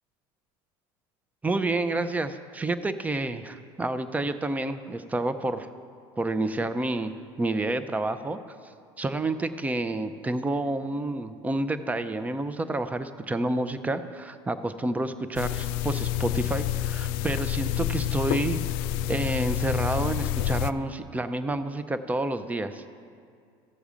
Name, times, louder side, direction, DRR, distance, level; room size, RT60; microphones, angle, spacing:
voice 1, 1.4-5.7 6.2-7.1 7.4-8.4 9.0-18.6 19.1-22.9, right 2 dB, 10° right, 11 dB, 0.6 m, -29 dB
sound 1, 15.4-20.7, left 12 dB, 75° left, 0.4 m, -28 dB
15.5 x 7.0 x 5.0 m, 2.3 s
supercardioid pair, 110°, 12 cm